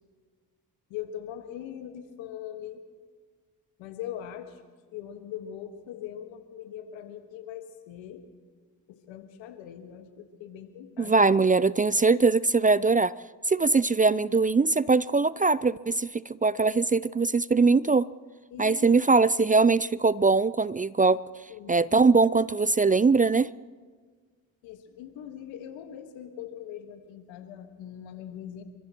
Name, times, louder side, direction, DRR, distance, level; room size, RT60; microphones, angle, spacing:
voice 1, 0.9-2.8 3.8-4.6 4.9-8.3 8.9-11.3 18.5-18.9 21.5-21.8 24.6-28.6, left 10 dB, 85° left, 7 dB, 1.6 m, -41 dB
voice 2, 11.0-13.1 13.5-18.1 18.6-21.2 21.7-23.5, right 4 dB, 20° right, 19 dB, 0.4 m, -22 dB
30.0 x 14.5 x 3.0 m, 1.5 s
hypercardioid pair, 45°, 45 cm